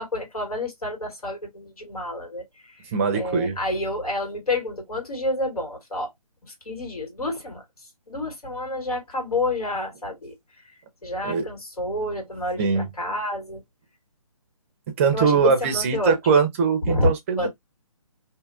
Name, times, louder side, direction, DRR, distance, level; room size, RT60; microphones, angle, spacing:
voice 1, 0.0-6.1 6.4-13.6 15.1-16.2 16.8-17.1 17.4-17.5, left 1 dB, 85° left, 1.8 m, -29 dB
voice 2, 2.9-3.6 11.2-11.5 12.6-12.9 15.0-17.5, right 5 dB, 20° right, 0.5 m, -21 dB
2.7 x 2.4 x 2.3 m
hypercardioid pair, 150°, 19 cm